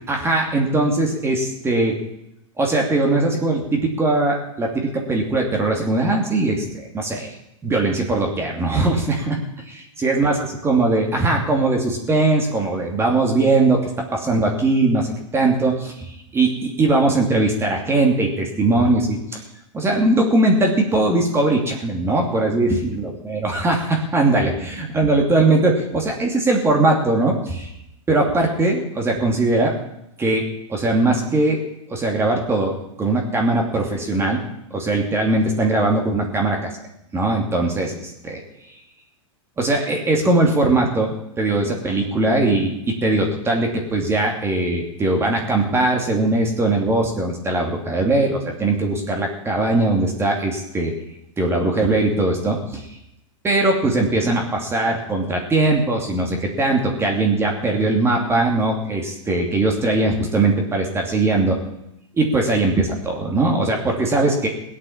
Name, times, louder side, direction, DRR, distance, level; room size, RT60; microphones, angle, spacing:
voice 1, 0.1-2.0 2.6-7.3 7.6-9.4 9.7-10.4 10.6-19.4 19.7-27.7 28.1-29.7 30.2-30.4 30.7-31.6 31.9-32.7 33.0-34.4 34.7-36.7 37.1-38.4 39.6-50.9 51.4-52.9 53.4-61.6 62.1-64.5, right 2 dB, 15° right, 1 dB, 2.6 m, -20 dB
18.5 x 8.4 x 7.3 m, 0.83 s
hypercardioid pair, 135°, 17 cm